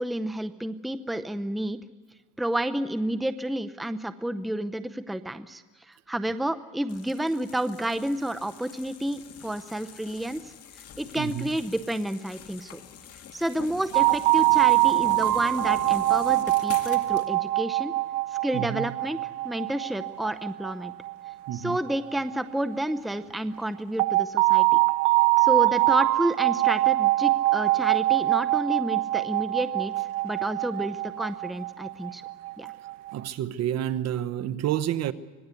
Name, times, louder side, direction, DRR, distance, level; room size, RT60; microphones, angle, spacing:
voice 1, 0.0-1.8 2.4-10.5 11.0-12.8 13.3-18.0 18.3-19.2 19.4-20.9 21.5-24.8 25.4-29.9 30.2-32.2 32.6-32.7, right 1 dB, ahead, 0.7 m, -30 dB
sound 1, 6.9-17.3, left 7 dB, 50° left, 2.2 m, -44 dB
voice 2, 11.2-11.6 18.5-18.9 21.5-21.8 33.1-35.1, right 11 dB, 55° right, 1.1 m, -29 dB
sound 2, 13.9-22.7 24.0-33.1, right 19 dB, 85° right, 1.1 m, -24 dB
25.5 x 19.0 x 8.3 m
cardioid pair, 125°, 32 cm